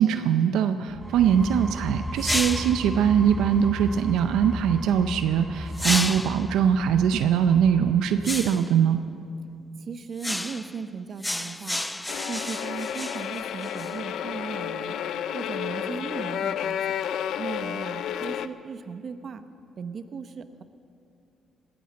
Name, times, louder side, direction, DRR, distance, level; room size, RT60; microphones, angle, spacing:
voice 1, 0.0-9.0, right 8 dB, 90° right, 9 dB, 0.5 m, -22 dB
sound 1, 0.9-8.5, equal, 10° right, 0.8 m, -35 dB
sound 2, 2.2-2.9 5.7-6.5 8.2-8.7 10.2-10.8 11.2-14.0, left 1 dB, 10° left, 0.5 m, -31 dB
voice 2, 9.8-11.8 12.3-15.0 15.3-17.0 17.4-19.4 19.8-20.6, right 5 dB, 50° right, 10 dB, 0.9 m, -37 dB
sound 3, 12.1-18.5, left 9 dB, 75° left, 0.5 m, -31 dB
19.0 x 10.0 x 7.5 m, 2.5 s
cardioid pair, 90°, 0 cm